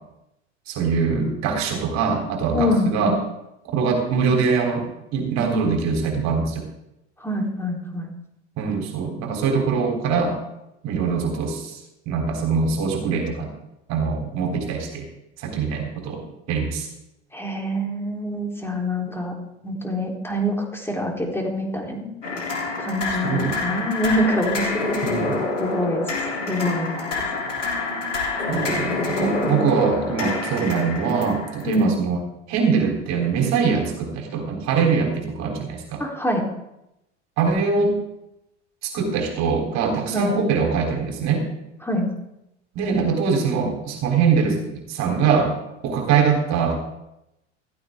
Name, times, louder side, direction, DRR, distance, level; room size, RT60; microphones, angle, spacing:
voice 1, 0.7-3.2 3.7-4.8 5.1-6.6 8.6-10.4 10.8-11.8 12.1-13.5 13.9-15.0 15.4-16.9 23.2-23.6 25.0-25.4 28.5-32.2 32.5-36.0 37.4-38.0 38.8-41.5 42.7-45.5 45.8-46.8, right 5 dB, 50° right, 3 dB, 3.6 m, -23 dB
voice 2, 2.5-3.1 7.2-8.1 17.3-19.3 19.6-22.1 22.8-25.3 25.6-26.1 26.5-27.2 28.5-29.8 31.6-31.9 36.0-36.5 40.1-40.4 41.8-42.1, equal, 5° left, 0 dB, 3.6 m, -25 dB
sound 1, 22.2-31.8, left 3 dB, 90° left, 3.3 m, -27 dB
15.5 x 14.0 x 3.7 m, 0.87 s
hypercardioid pair, 85°, 36 cm